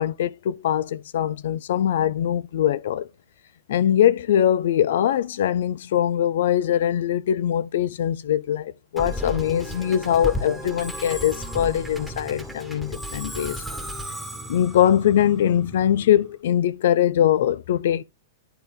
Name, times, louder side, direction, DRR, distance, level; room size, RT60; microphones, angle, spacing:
voice 1, 0.0-3.1 3.7-13.6 14.5-18.0, left 10 dB, 60° left, 0.7 m, -22 dB
Musical instrument, 9.0-16.3, equal, ahead, 1.5 m, -34 dB
11.0 x 3.9 x 3.7 m
figure-of-eight pair, 105°, 0 cm